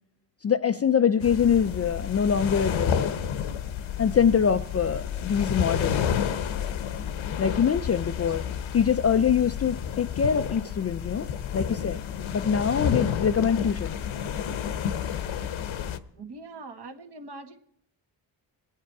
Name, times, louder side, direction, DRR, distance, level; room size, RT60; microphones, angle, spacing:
voice 1, 0.4-3.2 4.0-6.0 7.4-8.4 8.7-11.3 11.5-12.0 12.3-14.0, left 7 dB, 30° left, 0.4 m, -24 dB
sound 1, 1.2-16.0, left 8 dB, 70° left, 0.9 m, -30 dB
voice 2, 16.1-17.6, right 3 dB, 50° right, 1.6 m, -42 dB
21.0 x 9.2 x 4.7 m
cardioid pair, 70°, 50 cm